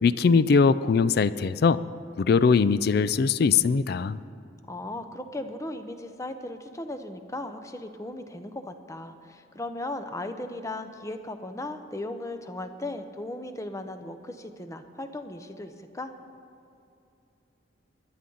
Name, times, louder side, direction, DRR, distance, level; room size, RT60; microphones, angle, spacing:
voice 1, 0.0-1.8 2.2-4.2, left 5 dB, 55° left, 16 dB, 0.3 m, -21 dB
voice 2, 4.7-16.1, left 2 dB, 15° left, 8 dB, 0.7 m, -37 dB
20.5 x 11.5 x 3.9 m, 2.7 s
head